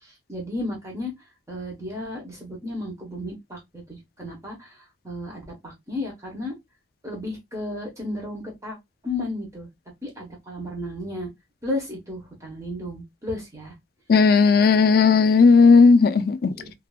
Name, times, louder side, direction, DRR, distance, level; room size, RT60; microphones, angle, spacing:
voice 1, 0.3-1.1 1.5-4.7 5.0-6.5 7.0-8.8 9.0-9.7 10.0-11.3 11.6-13.7 16.6-16.7, left 1 dB, 15° right, 1.0 m, -33 dB
voice 2, 14.1-16.5, left 4 dB, 50° left, 0.3 m, -15 dB
2.6 x 2.6 x 2.3 m
head